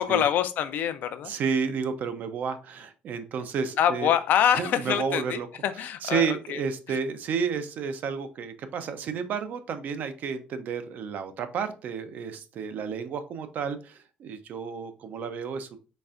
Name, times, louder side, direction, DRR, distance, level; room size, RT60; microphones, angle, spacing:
voice 1, 0.0-1.3 3.8-6.6, left 9 dB, 60° left, 11 dB, 0.4 m, -25 dB
voice 2, 1.2-4.1 4.5-5.5 6.0-15.8, right 6 dB, 55° right, 10 dB, 0.5 m, -31 dB
4.1 x 3.2 x 2.4 m, 0.34 s
cardioid pair, 135°, 3 cm